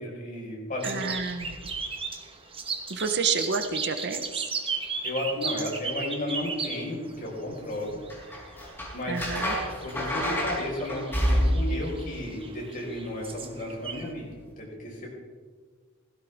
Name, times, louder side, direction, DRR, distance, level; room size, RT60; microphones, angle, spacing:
voice 1, 0.0-1.0 5.0-8.0 8.9-9.2 9.8-15.1, left 1 dB, 40° left, -3 dB, 4.7 m, -33 dB
sound 1, 0.8-14.1, right 4 dB, 25° right, 1.2 m, -36 dB
voice 2, 0.8-1.6 2.9-4.4 9.1-9.5, right 5 dB, 50° right, 8 dB, 0.9 m, -29 dB
sound 2, 8.1-11.8 14.0-14.2, equal, 10° left, 3.7 m, -27 dB
16.5 x 16.0 x 3.5 m, 1.5 s
head